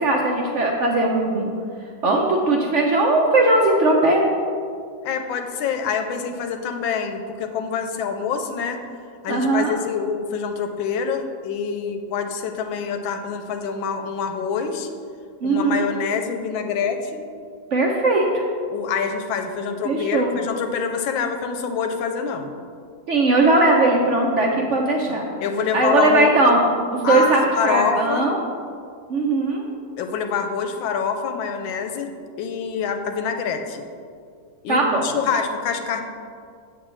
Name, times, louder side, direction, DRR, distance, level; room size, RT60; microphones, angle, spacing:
voice 1, 0.0-1.5 2.0-4.3 9.3-9.8 15.4-15.9 17.7-18.4 19.8-20.4 23.1-25.3 25.7-26.6 26.9-28.4 29.1-29.6 34.7-35.1, right 2 dB, 70° right, 0 dB, 0.7 m, -19 dB
voice 2, 5.0-8.8 9.2-14.9 15.4-17.3 18.7-22.5 25.4-26.3 27.0-28.3 30.0-32.1 32.4-33.8 34.6-36.0, left 6 dB, 85° left, 6 dB, 1.4 m, -26 dB
8.1 x 7.4 x 3.2 m, 2.2 s
omnidirectional pair, 2.1 m